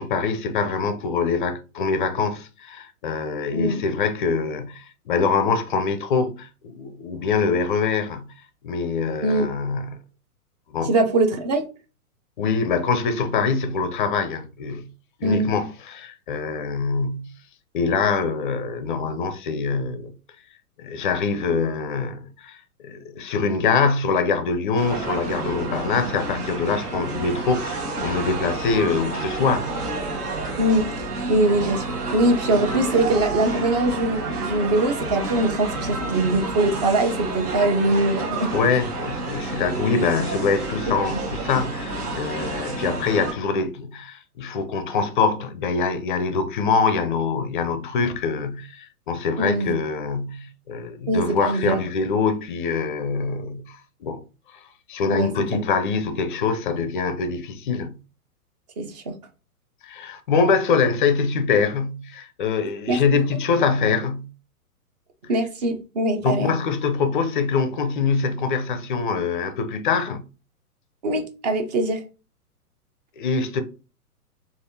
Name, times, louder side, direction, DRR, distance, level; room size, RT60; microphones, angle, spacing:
voice 1, 0.0-8.3 8.6-10.0 10.7-10.9 12.4-14.9 15.2-17.3 17.7-20.1 20.8-22.6 22.8-29.7 38.5-54.2 54.9-57.9 59.8-64.3 66.2-70.2 73.2-73.6, left 5 dB, 35° left, 0.4 m, -24 dB
voice 2, 9.2-9.5 10.9-11.7 15.2-15.6 30.6-31.8 32.1-38.5 49.4-49.7 51.1-51.8 55.1-55.6 58.8-59.1 62.9-63.2 65.3-66.5 71.0-72.0, right 2 dB, 30° right, 0.4 m, -22 dB
sound 1, 24.8-43.3, right 2 dB, 75° right, 1.2 m, -29 dB
3.3 x 2.5 x 2.6 m
hypercardioid pair, 120°, 46 cm